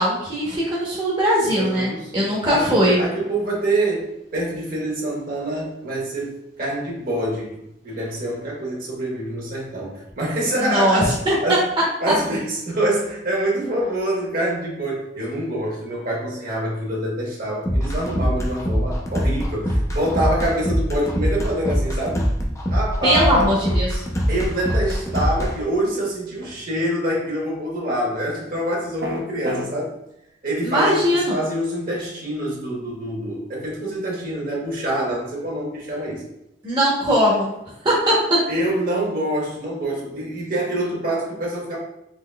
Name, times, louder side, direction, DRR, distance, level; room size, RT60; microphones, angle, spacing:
voice 1, 0.0-3.0 10.6-11.3 23.0-24.0 30.6-31.4 36.6-37.5 37.8-38.4, equal, 25° right, -6 dB, 0.8 m, -20 dB
voice 2, 1.5-4.1 4.3-11.0 11.4-11.7 12.0-22.2 22.7-23.5 24.3-29.9 30.4-36.2 38.5-41.8, right 1 dB, 55° right, -3 dB, 1.1 m, -25 dB
sound 1, 17.7-25.5, equal, 15° left, 0.4 m, -23 dB
sound 2, 29.0-29.7, equal, 75° right, 0.6 m, -28 dB
3.8 x 3.0 x 2.2 m, 0.82 s
head